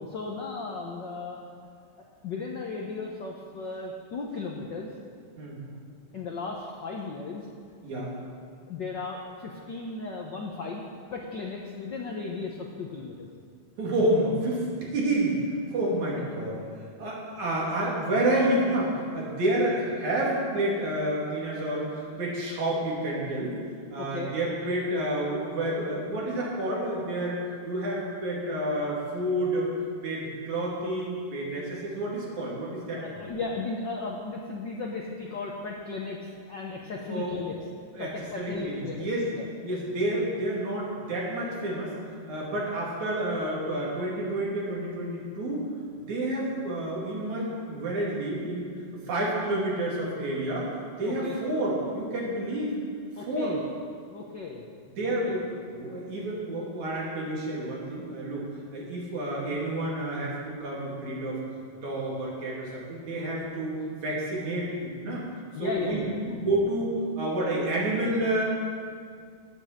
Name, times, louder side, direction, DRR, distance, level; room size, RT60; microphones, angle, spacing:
voice 1, 0.1-1.4 2.2-4.9 6.1-7.5 7.9-8.0 8.7-10.8 11.1-13.3 16.2-16.3 17.0-17.1 24.0-24.3 33.0-37.5 38.0-39.5 51.0-51.4 53.1-53.6 54.1-54.6 55.1-55.4 65.5-66.2, left 4 dB, 70° left, -1 dB, 1.1 m, -36 dB
voice 2, 13.8-15.4 15.7-16.6 17.0-23.6 23.9-29.7 30.0-33.2 37.1-37.4 37.9-38.1 38.4-39.2 39.6-41.9 42.3-45.6 46.1-48.7 49.1-50.7 51.0-52.7 53.3-53.5 55.0-55.4 55.7-58.5 58.7-61.4 61.8-65.2 65.6-66.0 66.3-68.4, right 1 dB, 80° right, -4 dB, 3.9 m, -29 dB
10.5 x 8.7 x 7.4 m, 2.1 s
omnidirectional pair, 3.3 m